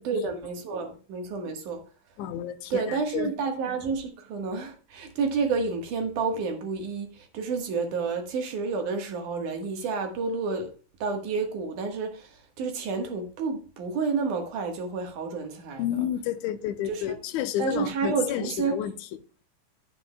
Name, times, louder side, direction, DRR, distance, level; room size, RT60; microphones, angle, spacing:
voice 1, 0.0-1.8 2.7-10.7 11.0-16.0 16.9-17.2 17.6-18.9, right 4 dB, 70° right, 2.9 m, -30 dB
voice 2, 2.2-3.3 15.8-18.9, left 11 dB, 75° left, 1.9 m, -30 dB
11.0 x 9.3 x 2.3 m
omnidirectional pair, 3.8 m